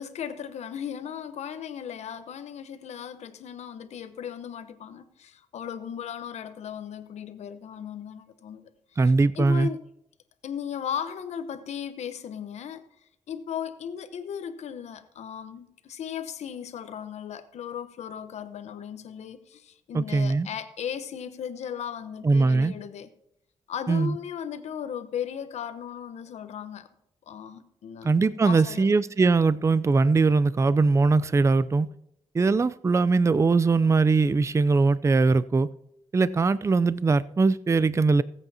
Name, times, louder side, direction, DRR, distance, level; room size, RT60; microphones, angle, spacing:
voice 1, 0.0-8.6 9.0-9.8 10.4-12.8 13.3-23.1 23.7-26.9 27.3-28.2 28.4-29.0, left 8 dB, 80° left, 0.9 m, -36 dB
voice 2, 9.0-9.7 19.9-20.5 22.2-22.7 23.9-24.2 28.0-31.9 32.3-35.7 36.1-38.2, right 3 dB, 25° right, 0.4 m, -21 dB
20.0 x 8.1 x 2.8 m
cardioid pair, 65°, 11 cm